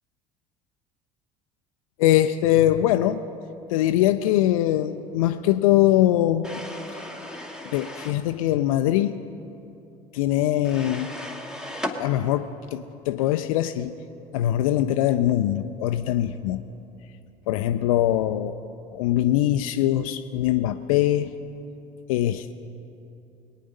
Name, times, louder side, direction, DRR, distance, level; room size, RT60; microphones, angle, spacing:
voice 1, 2.0-3.2 3.7-6.5 7.7-9.2 10.1-11.1 12.0-13.9 14.3-16.6 17.5-18.5 18.9-21.3 22.1-22.5, left 13 dB, 60° left, 9 dB, 0.5 m, -22 dB
sound 1, 6.4-8.2 10.7-12.0, left 1 dB, 5° right, 1.2 m, -35 dB
21.0 x 9.3 x 5.3 m, 2.8 s
figure-of-eight pair, 65°, 20 cm